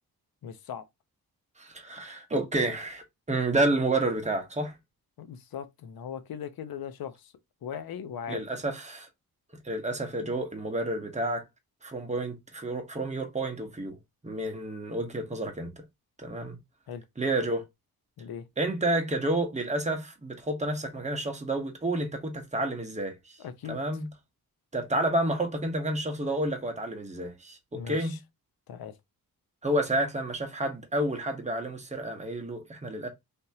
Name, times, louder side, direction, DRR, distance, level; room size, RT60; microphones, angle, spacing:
voice 1, 0.4-0.8 5.2-7.3 7.6-8.4 16.9-17.0 18.2-18.4 23.4-23.8 27.7-28.2 28.7-29.0, left 8 dB, 70° left, 0.7 m, -39 dB
voice 2, 1.6-4.8 8.3-9.1 9.6-11.4 11.8-14.0 14.2-15.8 16.2-16.6 17.2-17.6 18.6-23.4 23.7-24.1 24.7-28.2 29.6-33.1, right 1 dB, 20° right, 1.0 m, -30 dB
3.4 x 2.8 x 2.7 m
wide cardioid pair, 125°, 37 cm